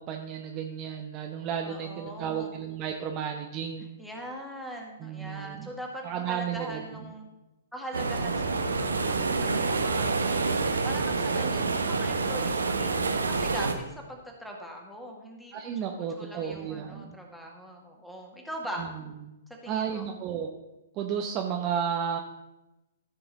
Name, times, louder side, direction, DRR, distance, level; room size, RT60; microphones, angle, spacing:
voice 1, 0.0-3.8 5.0-5.7 6.0-7.1 15.5-17.2 18.8-19.1 19.7-20.5 20.9-22.2, right 8 dB, 30° right, 3 dB, 0.8 m, -33 dB
voice 2, 1.6-2.6 4.0-7.3 7.7-15.5 16.2-18.9 19.6-20.1, equal, ahead, 0 dB, 1.8 m, -41 dB
sound 1, 7.9-13.7, right 4 dB, 75° right, 0.9 m, -27 dB
14.0 x 5.9 x 4.0 m, 1.0 s
figure-of-eight pair, 115°, 0 cm